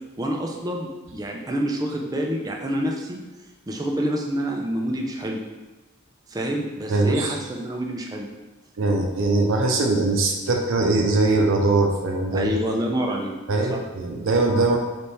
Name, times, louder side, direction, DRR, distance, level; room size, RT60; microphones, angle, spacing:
voice 1, 0.2-3.2 3.7-5.4 6.3-8.3 12.3-13.3 13.7-13.8, equal, 20° right, 1 dB, 0.4 m, -27 dB
voice 2, 6.9-7.3 8.8-12.5 13.5-14.8, right 2 dB, 80° right, 2 dB, 0.5 m, -21 dB
3.3 x 3.3 x 4.1 m, 1.2 s
head